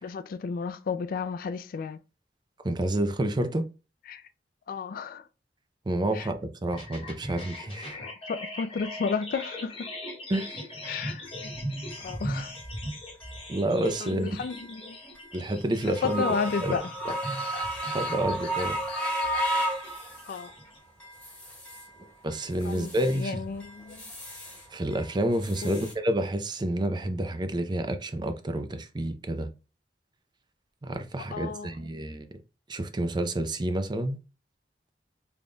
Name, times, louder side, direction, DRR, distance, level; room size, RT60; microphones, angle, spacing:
voice 1, 0.0-2.0 4.1-4.3 4.7-5.3 6.1-6.3 7.9-9.9 10.8-11.5 12.0-12.5 14.0-15.0 16.0-16.9 20.3-20.5 22.6-24.0 25.6-25.9 31.3-31.7, left 5 dB, 55° left, 0.3 m, -33 dB
voice 2, 2.6-3.7 5.9-8.0 10.3-10.6 13.5-14.4 15.3-16.2 16.6-16.7 17.9-18.8 22.2-23.4 24.7-29.5 30.8-32.3 32.7-34.2, right 1 dB, 25° right, 0.5 m, -29 dB
sound 1, 6.7-20.8, equal, 30° left, 1.0 m, -39 dB
sound 2, 11.3-11.4 11.9-12.0 12.5-12.6 13.2-13.4 13.8-14.0 14.5-14.6 15.2-15.3 15.8-20.5 21.0-21.9 22.3-23.2 23.6-24.6 24.9-25.9, right 1 dB, 10° left, 1.4 m, -33 dB
3.8 x 3.5 x 2.2 m
head